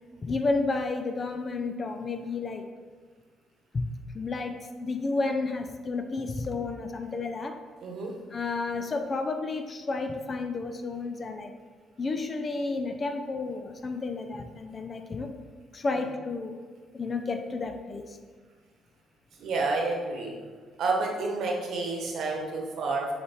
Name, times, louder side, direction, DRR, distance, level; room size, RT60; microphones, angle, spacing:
voice 1, 0.2-2.7 3.7-3.9 4.1-7.6 8.3-11.5 12.0-15.3 15.7-16.6 16.9-18.2, left 3 dB, 35° left, 7 dB, 0.5 m, -31 dB
voice 2, 7.8-8.1 19.3-20.4 20.8-23.1, right 3 dB, 60° right, 0 dB, 1.1 m, -29 dB
6.5 x 4.9 x 3.0 m, 1.5 s
figure-of-eight pair, 45°, 0 cm